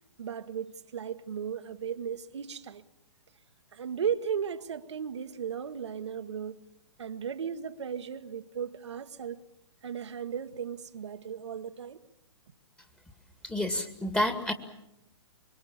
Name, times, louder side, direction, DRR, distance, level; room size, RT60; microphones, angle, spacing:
voice 1, 0.2-2.8 3.7-6.6 7.0-9.4 9.8-12.0, right 7 dB, 75° right, 1.2 m, -36 dB
voice 2, 13.4-14.5, left 1 dB, 5° left, 2.1 m, -29 dB
25.0 x 23.0 x 7.1 m
hypercardioid pair, 125°, 15 cm